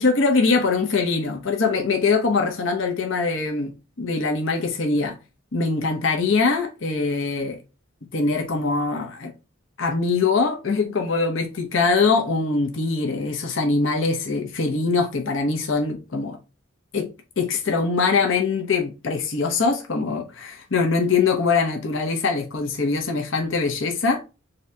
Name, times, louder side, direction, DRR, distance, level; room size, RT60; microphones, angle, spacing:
voice 1, 0.0-3.7 4.0-5.2 5.5-7.6 8.1-9.3 9.8-16.4 16.9-17.1 17.4-24.2, left 4 dB, 65° left, 0.8 m, -22 dB
3.9 x 2.8 x 3.2 m
head